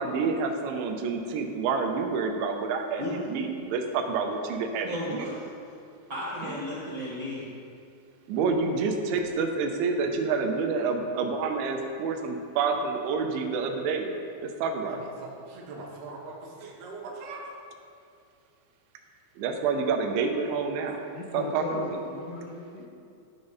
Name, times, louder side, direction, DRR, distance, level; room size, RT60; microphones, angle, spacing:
voice 1, 0.0-5.3 8.3-14.1 14.4-15.1 19.4-21.1 21.3-22.0, right 4 dB, 85° right, 4 dB, 3.0 m, -28 dB
voice 2, 4.9-5.4 6.1-7.4, left 1 dB, 50° right, -10 dB, 1.3 m, -34 dB
voice 3, 14.9-17.4, right 3 dB, 70° right, -3 dB, 2.7 m, -42 dB
voice 4, 21.1-22.9, left 3 dB, 80° left, -1 dB, 2.2 m, -37 dB
12.5 x 5.1 x 4.0 m, 2.5 s
omnidirectional pair, 5.2 m